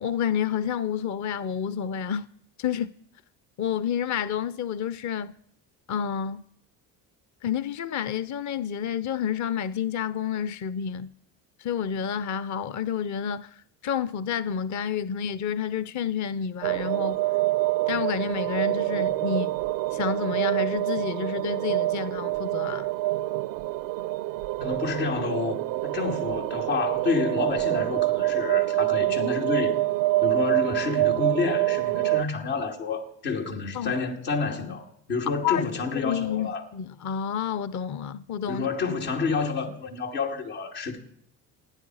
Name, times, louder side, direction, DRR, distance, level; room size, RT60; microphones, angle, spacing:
voice 1, 0.0-2.3 2.6-2.9 3.6-5.3 5.9-6.4 7.4-11.1 11.6-17.2 17.9-19.5 19.9-22.9 33.7-33.9 35.4-35.7 36.0-38.7, left 8 dB, 45° left, 0.6 m, -29 dB
sound 1, 16.6-32.2, right 18 dB, 85° right, 0.6 m, -26 dB
voice 2, 24.6-29.8 30.2-36.6 38.5-41.0, left 4 dB, 90° left, 2.8 m, -29 dB
28.0 x 9.9 x 4.9 m
supercardioid pair, 65°, 42 cm